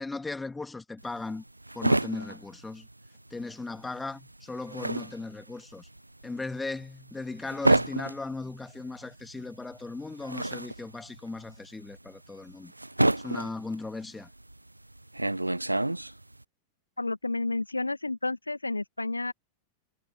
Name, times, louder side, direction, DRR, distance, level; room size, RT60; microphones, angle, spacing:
voice 1, 0.0-1.4 1.7-2.9 3.3-5.9 6.2-12.7 13.2-14.3, left 3 dB, 10° left, 2.3 m, -37 dB
sound 1, 1.0-3.5 3.8-16.4, right 1 dB, 85° right, 0.9 m, -30 dB
voice 2, 17.0-19.3, left 2 dB, 80° left, 1.9 m, -31 dB
figure-of-eight pair, 90°, 0 cm